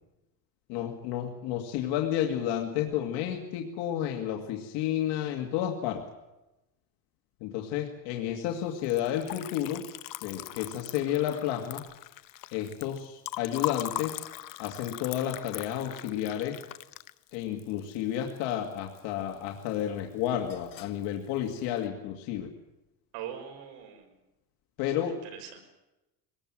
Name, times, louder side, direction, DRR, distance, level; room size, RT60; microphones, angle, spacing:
voice 1, 0.7-6.1 7.4-9.9 10.2-11.8 12.5-14.3 14.6-16.6 17.3-22.5 24.8-25.3, left 11 dB, 85° left, 2 dB, 2.2 m, -31 dB
Liquid, 8.8-19.0 19.3-20.0 20.2-21.0, left 15 dB, 55° left, 0.9 m, -40 dB
voice 2, 23.1-24.1 25.0-25.1 25.4-25.6, right 9 dB, 85° right, 4 dB, 6.0 m, -41 dB
23.0 x 19.5 x 7.5 m, 0.98 s
cardioid pair, 125°, 41 cm